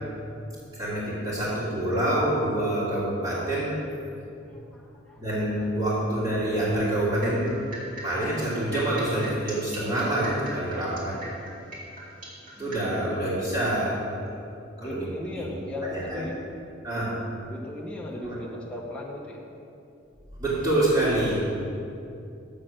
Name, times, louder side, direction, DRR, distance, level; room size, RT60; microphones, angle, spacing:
voice 1, 0.7-3.8 5.2-7.5 8.0-11.2 12.6-14.0 14.3-14.4 14.8-15.1 15.3-15.4 15.9-16.2 16.8-17.1 18.2-18.4 20.4-21.4, right 1 dB, 25° right, -13 dB, 2.2 m, -26 dB
voice 2, 4.5-5.2 5.6-5.7 12.6-13.0 14.8-16.3 17.5-19.4, left 1 dB, 5° left, -3 dB, 0.9 m, -37 dB
sound 1, 7.1-12.8, right 1 dB, 45° right, 2.2 m, -40 dB
7.7 x 6.5 x 6.4 m, 2.6 s
head